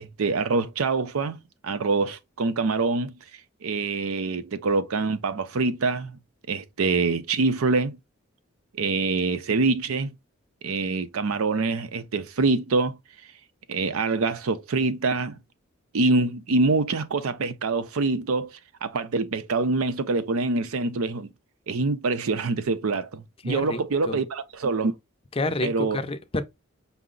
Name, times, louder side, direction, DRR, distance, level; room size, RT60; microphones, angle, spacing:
voice 1, 0.0-1.4 1.6-3.1 3.6-6.1 6.5-8.0 8.7-10.1 10.6-13.0 13.7-15.4 15.9-18.5 18.8-21.3 21.7-24.9 25.6-26.0, right 3 dB, 80° right, 0.5 m, -25 dB
voice 2, 23.5-23.8 24.1-24.2 25.4-26.4, left 2 dB, 25° left, 0.5 m, -28 dB
5.6 x 2.0 x 3.7 m
head